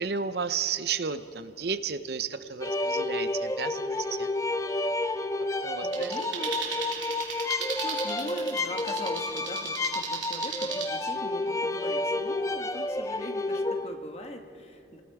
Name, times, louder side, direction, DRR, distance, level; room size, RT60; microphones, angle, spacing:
voice 1, 0.0-4.3 5.6-6.1, right 6 dB, 60° right, 11 dB, 0.7 m, -32 dB
sound 1, 2.6-13.9, left 2 dB, 15° left, 0.6 m, -30 dB
voice 2, 5.5-6.6 7.6-15.0, equal, 35° left, 4 dB, 1.6 m, -41 dB
sound 2, 5.9-10.9, right 6 dB, 85° right, 3.4 m, -36 dB
29.0 x 19.5 x 4.8 m, 2.6 s
head